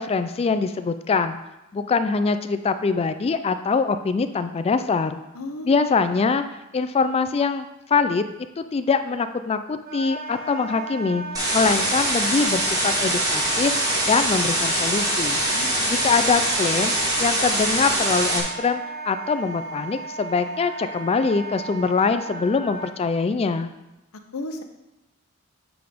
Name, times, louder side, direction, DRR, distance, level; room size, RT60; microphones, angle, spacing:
voice 1, 0.0-1.4 1.7-5.2 5.7-6.4 6.7-8.2 8.6-11.2 11.5-13.8 14.1-15.4 15.9-16.9 17.2-23.7, left 4 dB, 30° left, 10 dB, 0.3 m, -23 dB
voice 2, 5.3-5.7 15.5-15.9 24.3-24.6, left 2 dB, 75° left, 6 dB, 0.7 m, -33 dB
Wind instrument woodwind instrument, 9.8-22.9, right 3 dB, 45° right, 1.1 m, -35 dB
sound 1, 11.3-18.4, right 1 dB, 15° right, 1.3 m, -23 dB
7.9 x 3.5 x 5.0 m, 0.97 s
head